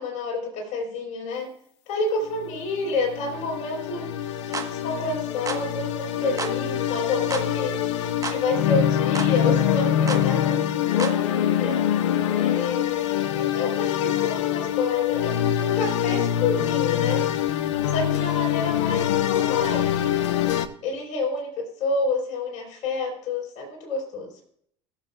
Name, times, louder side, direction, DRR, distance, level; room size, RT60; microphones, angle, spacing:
voice 1, 0.0-1.5 1.9-4.1 4.4-7.9 8.2-11.8 12.3-17.3 17.9-19.9 20.8-21.5 21.8-24.3, left 3 dB, 55° left, -1 dB, 4.7 m, -29 dB
sound 1, 2.2-20.7, left 11 dB, 75° left, 0.7 m, -24 dB
sound 2, 4.5-4.7 5.5-5.6 6.4-6.6 7.3-7.5 8.2-8.4 9.1-9.3 10.1-10.3 11.0-11.2, right 5 dB, 20° right, 1.3 m, -31 dB
21.5 x 7.3 x 2.4 m, 0.67 s
hypercardioid pair, 70°, 16 cm